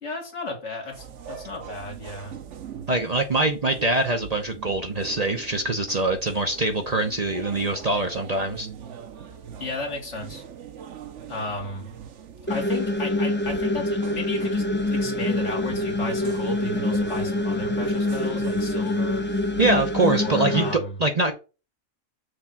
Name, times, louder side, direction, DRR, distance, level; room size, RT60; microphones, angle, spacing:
voice 1, 0.0-2.4 9.6-10.4 11.3-11.9 12.5-19.3 20.1-21.0, left 2 dB, 60° left, 2.3 m, -34 dB
sound 1, 0.9-20.2, right 8 dB, 65° right, 1.1 m, -41 dB
voice 2, 2.9-8.7 19.6-20.7 21.0-21.3, right 2 dB, 35° right, 0.8 m, -23 dB
sound 2, 12.5-20.7, left 2 dB, 15° left, 0.5 m, -25 dB
6.4 x 3.6 x 5.9 m
omnidirectional pair, 1.4 m